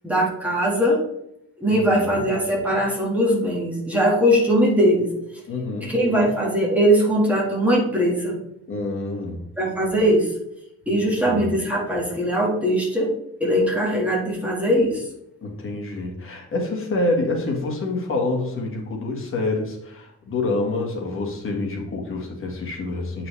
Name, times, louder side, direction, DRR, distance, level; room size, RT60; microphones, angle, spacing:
voice 1, 0.0-1.0 1.6-5.1 5.8-8.4 9.6-10.3 10.9-13.1 13.4-15.0, equal, 5° right, -3 dB, 1.9 m, -20 dB
voice 2, 1.7-2.2 5.5-5.9 8.7-9.4 11.2-11.5 15.4-23.3, left 2 dB, 45° left, 0 dB, 1.7 m, -27 dB
8.4 x 5.9 x 3.3 m, 0.80 s
wide cardioid pair, 175°, 30 cm